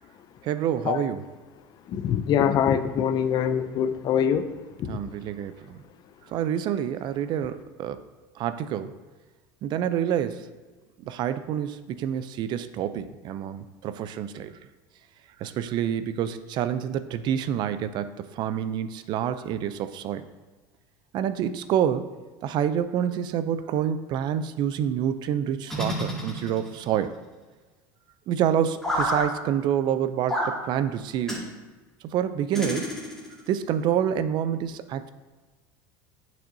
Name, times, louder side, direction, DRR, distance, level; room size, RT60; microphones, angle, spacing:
voice 1, 0.4-1.2 4.9-5.8 6.3-8.0 8.4-8.9 9.6-10.5 11.0-14.5 15.4-20.3 21.1-22.1 22.4-27.2 28.3-31.5 32.0-32.9 33.5-35.1, right 9 dB, 50° right, 12 dB, 0.5 m, -27 dB
voice 2, 1.9-4.4 4.8-5.0, left 8 dB, 45° left, 10 dB, 0.5 m, -24 dB
sound 1, 25.7-26.9 28.8-29.3 30.3-30.6 31.3-31.5 32.5-33.4, equal, 5° left, 2.1 m, -29 dB
8.5 x 6.2 x 2.7 m, 1.3 s
supercardioid pair, 110°, 10 cm